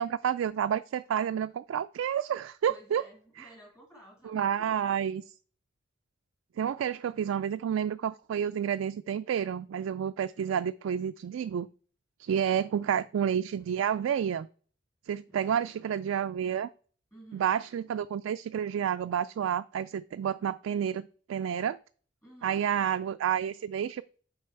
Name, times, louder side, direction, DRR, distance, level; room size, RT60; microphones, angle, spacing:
voice 1, 0.0-3.0 4.3-5.2 6.6-11.7 12.2-14.5 15.1-16.7 17.3-21.8 22.4-24.0, right 8 dB, 85° right, 0.3 m, -30 dB
voice 2, 2.7-5.0 10.2-10.5 12.6-13.0 15.3-16.1 17.1-17.6 22.2-22.7, equal, 15° left, 2.2 m, -55 dB
7.7 x 4.7 x 4.6 m
head